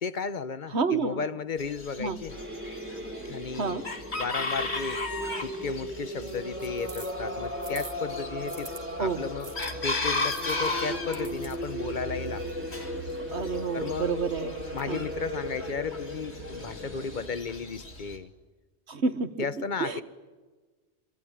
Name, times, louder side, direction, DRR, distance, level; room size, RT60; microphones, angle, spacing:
voice 1, 0.0-2.4 3.2-3.9 4.1-5.1 5.4-8.7 9.0-9.5 9.8-12.5 13.7-14.2 14.7-18.3 19.4-20.0, left 5 dB, 45° left, 1.1 m, -34 dB
voice 2, 0.7-1.2 2.0-2.2 3.5-3.8 9.0-9.2 13.3-14.6 14.9-15.0 18.9-19.3 19.8-20.0, right 4 dB, 75° right, 1.9 m, -29 dB
Chicken rooster, 1.6-18.2, left 2 dB, 70° left, 3.0 m, -36 dB
sound 1, 2.3-17.3, equal, 10° right, 3.5 m, -37 dB
sound 2, 4.6-8.8 9.4-14.8, right 3 dB, 40° right, 2.2 m, -50 dB
26.5 x 25.0 x 8.9 m
omnidirectional pair, 1.2 m